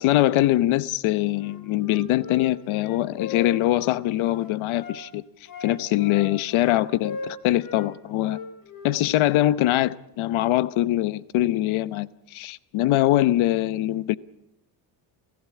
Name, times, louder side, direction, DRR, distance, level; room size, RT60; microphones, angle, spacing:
voice 1, 0.0-5.2 5.6-8.4 8.8-14.2, left 15 dB, 75° left, 0.9 m, -23 dB
Wind instrument woodwind instrument, 1.3-5.0 5.4-7.9 8.2-9.5, left 4 dB, 40° left, 6.1 m, -39 dB
28.5 x 15.0 x 8.5 m
cardioid pair, 145°, 49 cm